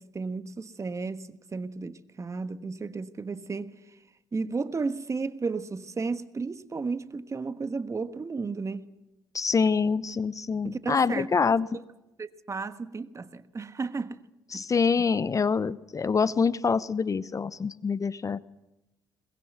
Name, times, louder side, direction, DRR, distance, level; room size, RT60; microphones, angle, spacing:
voice 1, 0.0-4.0 4.3-8.9 10.6-11.3 12.2-14.2 14.5-14.7, right 4 dB, 30° right, 1.4 m, -33 dB
voice 2, 9.3-11.7 14.5-18.4, left 5 dB, 35° left, 0.8 m, -25 dB
21.5 x 21.0 x 8.0 m
hypercardioid pair, 55°, 10 cm